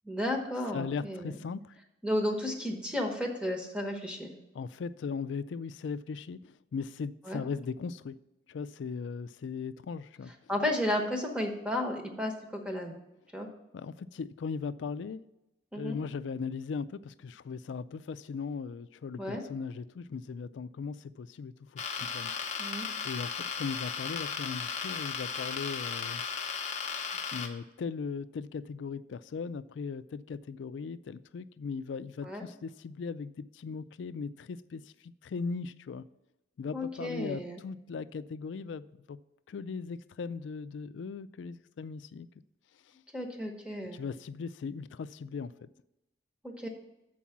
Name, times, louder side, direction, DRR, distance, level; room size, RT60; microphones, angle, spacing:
voice 1, 0.0-1.4 2.0-4.3 7.3-7.4 10.5-13.0 13.3-13.5 15.7-16.0 19.2-19.4 22.6-22.9 32.2-32.4 36.7-37.6 43.1-44.0 46.4-46.7, left 1 dB, 5° right, 2 dB, 1.0 m, -33 dB
voice 2, 0.7-1.8 4.5-8.2 8.5-10.5 13.7-15.2 15.8-22.7 23.0-26.2 27.3-36.0 36.6-39.2 39.5-42.3 43.9-45.7, left 5 dB, 90° left, 15 dB, 0.3 m, -38 dB
sound 1, 21.8-27.5, left 6 dB, 40° left, 0.7 m, -35 dB
7.3 x 4.7 x 7.1 m, 0.94 s
head